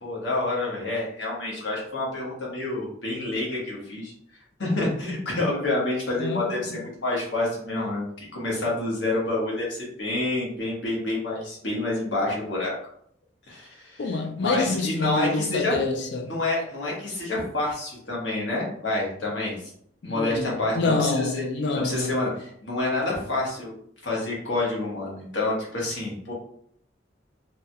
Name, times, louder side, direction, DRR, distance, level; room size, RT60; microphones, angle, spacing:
voice 1, 0.0-12.7 13.5-14.1 14.4-15.8 16.2-19.7 20.0-21.5 21.7-23.8 24.0-26.3, left 2 dB, 90° left, 1.3 m, -28 dB
voice 2, 6.2-6.8 14.0-16.3 20.0-22.3, left 3 dB, 70° left, 0.4 m, -27 dB
3.4 x 2.2 x 2.7 m
head